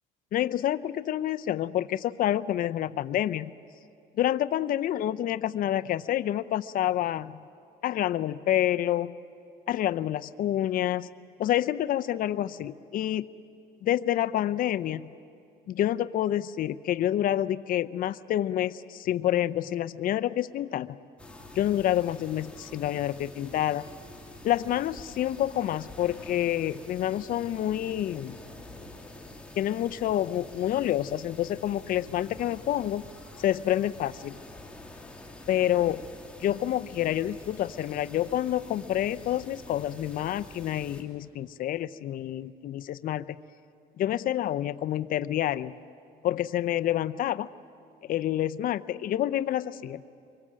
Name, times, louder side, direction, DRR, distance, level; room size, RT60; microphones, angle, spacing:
voice 1, 0.3-3.5 4.2-7.4 7.8-9.1 9.7-11.1 11.4-13.2 13.8-15.1 15.7-21.0 21.5-23.9 24.4-28.4 29.6-33.0 33.4-34.4 35.5-36.0 36.4-43.3 44.0-45.7 46.2-47.5 48.1-50.0, left 12 dB, 55° left, 12 dB, 0.6 m, -28 dB
sound 1, 21.2-41.0, left 2 dB, 5° left, 2.8 m, -47 dB
25.5 x 24.0 x 7.6 m, 2.4 s
cardioid pair, 110°, 17 cm